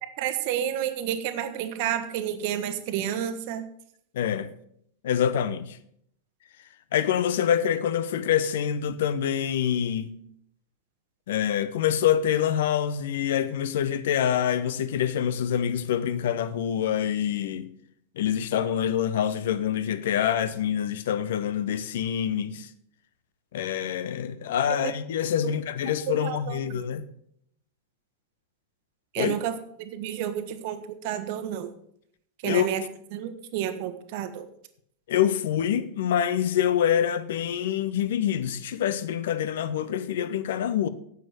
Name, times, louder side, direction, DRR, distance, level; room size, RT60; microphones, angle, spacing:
voice 1, 0.0-3.7 24.7-24.9 25.4-25.5 26.1-26.8 29.1-31.7 32.4-32.8 33.1-34.5, right 10 dB, 50° right, 1.2 m, -30 dB
voice 2, 4.1-4.5 5.0-5.8 6.9-10.2 11.3-17.7 18.2-22.7 23.5-27.0 29.2-29.3 32.4-32.7 35.1-40.9, left 9 dB, 55° left, 0.8 m, -26 dB
9.3 x 8.3 x 6.2 m
figure-of-eight pair, 90°, 0 cm